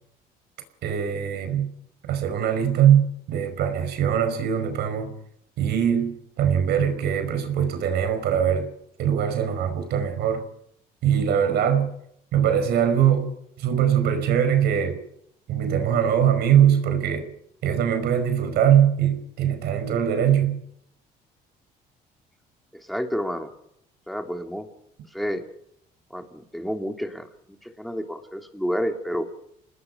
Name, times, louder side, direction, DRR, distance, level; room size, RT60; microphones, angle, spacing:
voice 1, 0.8-1.7 2.1-5.1 5.6-8.7 9.0-10.4 11.0-11.9 12.3-13.3 13.6-15.0 15.5-17.3 17.6-20.6, right 9 dB, 75° right, 8 dB, 5.1 m, -22 dB
voice 2, 22.8-23.5 24.1-24.7 25.1-25.4 26.1-27.3 27.6-29.3, equal, ahead, 5 dB, 3.2 m, -29 dB
28.0 x 20.0 x 5.4 m, 0.72 s
cardioid pair, 110°, 17 cm